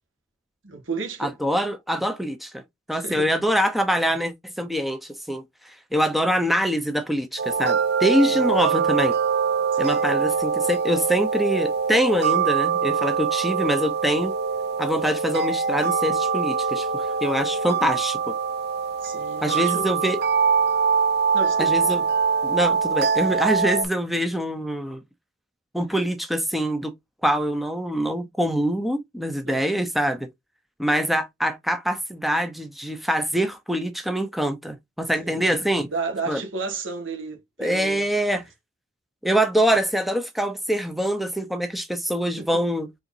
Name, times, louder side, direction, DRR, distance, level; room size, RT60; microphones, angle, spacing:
voice 1, 0.6-1.3 2.9-3.3 8.3-8.5 9.7-10.0 19.0-19.9 21.3-22.1 29.4-29.8 35.2-35.5 35.8-38.0 38.3-38.4 42.4-42.6, right 4 dB, 75° right, 1.6 m, -33 dB
voice 2, 1.2-2.6 2.9-5.4 5.9-9.2 9.8-14.3 14.8-18.3 19.4-20.2 21.6-22.1 22.4-25.0 25.7-26.9 27.2-30.3 30.8-35.9 36.3-36.4 37.6-38.4 39.2-42.9, equal, ahead, 0.7 m, -24 dB
sound 1, 7.4-23.9, right 6 dB, 55° right, 0.7 m, -23 dB
4.4 x 3.9 x 2.7 m
head